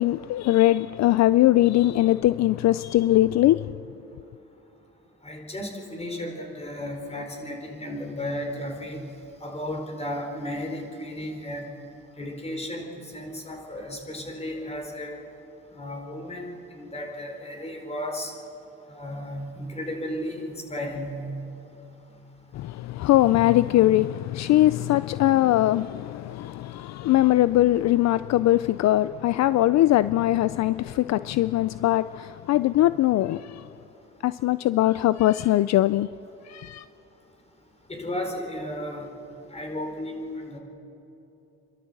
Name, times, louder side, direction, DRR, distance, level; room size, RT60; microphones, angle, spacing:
voice 1, 0.0-3.7 22.5-33.7 34.2-36.1 36.4-36.8, left 15 dB, 65° left, 0.4 m, -21 dB
voice 2, 5.2-9.0 9.4-11.7 12.2-15.2 15.7-18.3 18.9-21.3 37.9-39.1 39.5-40.6, left 1 dB, 20° left, 4.2 m, -34 dB
28.5 x 12.5 x 8.0 m
cardioid pair, 90°, 30 cm